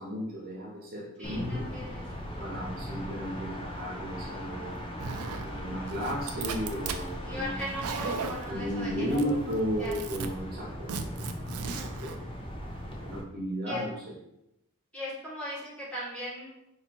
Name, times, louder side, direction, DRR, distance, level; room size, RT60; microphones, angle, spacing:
voice 1, 0.0-1.8 2.4-4.8 5.4-7.6 8.5-11.0 11.7-12.2 13.0-14.1, equal, 45° right, -4 dB, 1.1 m, -34 dB
sound 1, 1.2-13.2, equal, 25° left, 0.6 m, -39 dB
voice 2, 1.2-2.0 7.2-9.2 9.8-9.9 13.7-13.8 14.9-16.5, equal, 5° left, -9 dB, 1.7 m, -38 dB
Zipper (clothing), 5.0-5.5 5.9-7.0 7.6-8.5 9.1-9.5 9.8-10.3 10.9-12.1, right 5 dB, 85° right, 0.4 m, -36 dB
4.3 x 2.8 x 4.3 m, 0.84 s
head